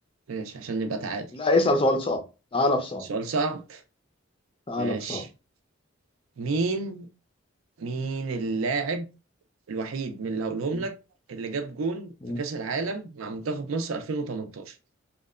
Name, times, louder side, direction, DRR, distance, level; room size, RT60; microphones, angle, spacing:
voice 1, 0.3-1.3 3.1-3.8 4.7-5.3 6.4-7.1 7.8-9.0 9.7-10.9 11.3-14.7, right 3 dB, 85° right, 0.5 m, -30 dB
voice 2, 1.3-2.2 2.5-3.0 4.7-5.2 12.2-12.4, left 2 dB, 25° left, 0.4 m, -24 dB
2.8 x 2.2 x 2.3 m
head